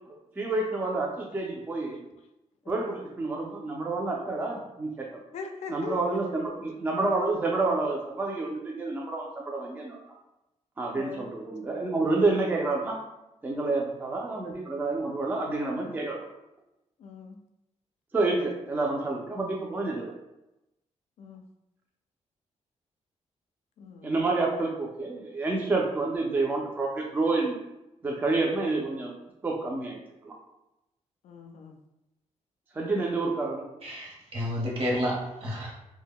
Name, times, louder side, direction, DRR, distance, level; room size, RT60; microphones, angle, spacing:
voice 1, 0.1-2.0 2.7-5.2 5.7-10.0 10.8-13.0 13.4-16.2 18.1-20.1 24.0-27.6 28.0-29.1 29.4-30.0 30.2-30.3 32.7-33.6, right 3 dB, 15° right, -1 dB, 0.4 m, -29 dB
voice 2, 5.3-6.4 10.9-11.3 17.0-17.4 21.2-21.4 23.8-24.2 31.2-31.8, left 4 dB, 65° left, 5 dB, 0.4 m, -41 dB
voice 3, 33.8-35.7, equal, 50° right, -3 dB, 0.8 m, -30 dB
2.1 x 2.0 x 3.5 m, 0.92 s
wide cardioid pair, 140°, 12 cm